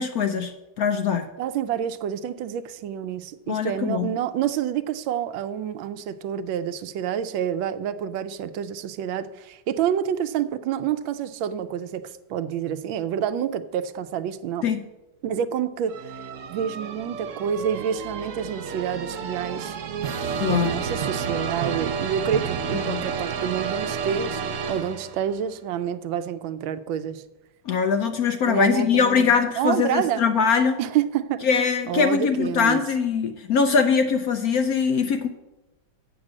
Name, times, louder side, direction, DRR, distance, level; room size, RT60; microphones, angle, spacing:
voice 1, 0.0-1.3 3.5-4.1 14.6-14.8 20.4-20.8 22.8-23.0 27.7-30.8 31.4-35.3, left 6 dB, 70° left, 7 dB, 0.9 m, -22 dB
voice 2, 1.4-14.7 15.2-16.1 16.5-19.8 20.3-24.4 24.7-27.2 28.5-30.2 30.8-31.4 31.9-32.8, right 9 dB, 90° right, 12 dB, 1.4 m, -28 dB
sound 1, 15.9-25.4, right 6 dB, 65° right, 0.8 m, -30 dB
7.9 x 6.1 x 7.5 m, 1.0 s
omnidirectional pair, 2.1 m